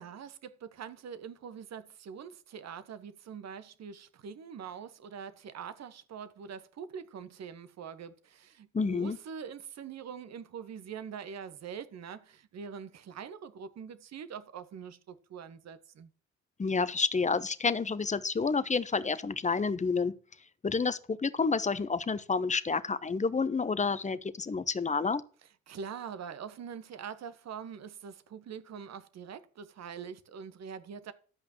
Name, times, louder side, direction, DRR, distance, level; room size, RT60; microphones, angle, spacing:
voice 1, 0.0-16.1 25.7-31.1, right 7 dB, 40° right, 1.4 m, -44 dB
voice 2, 8.7-9.2 16.6-20.1 20.6-25.2, left 4 dB, 20° left, 1.0 m, -29 dB
13.0 x 8.3 x 3.0 m
figure-of-eight pair, 45°, 39 cm